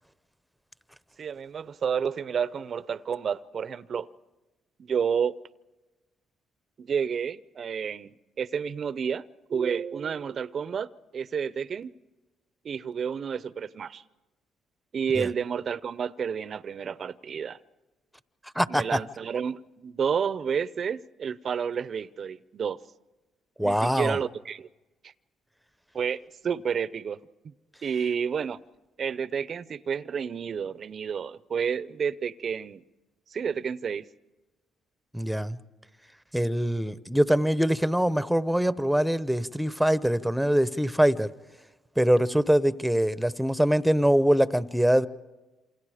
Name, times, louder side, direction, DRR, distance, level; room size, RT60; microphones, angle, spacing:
voice 1, 1.2-4.1 4.8-5.4 6.8-9.2 9.5-11.9 12.6-14.0 14.9-17.6 18.7-22.8 23.6-24.7 25.9-27.2 27.4-27.5 27.8-28.6 29.0-32.8 33.3-34.1, right 7 dB, 55° right, 0.7 m, -30 dB
voice 2, 23.6-24.2 35.1-35.6 36.3-41.3 42.0-45.1, equal, ahead, 0.9 m, -23 dB
28.0 x 27.0 x 5.0 m
supercardioid pair, 65°, 0 cm